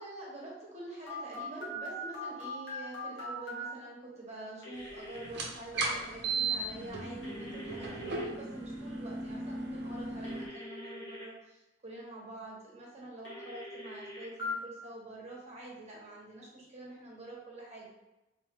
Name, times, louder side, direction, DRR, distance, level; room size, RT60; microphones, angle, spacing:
voice 1, 0.0-17.9, right 1 dB, 40° right, -5 dB, 1.2 m, -46 dB
Telephone, 1.1-3.6 4.6-5.3 7.2-8.2 10.2-11.3 13.3-14.5, left 2 dB, 80° left, 1.4 m, -42 dB
sound 1, 5.2-10.5, right 3 dB, 65° right, 0.8 m, -36 dB
3.5 x 3.0 x 3.6 m, 0.98 s
head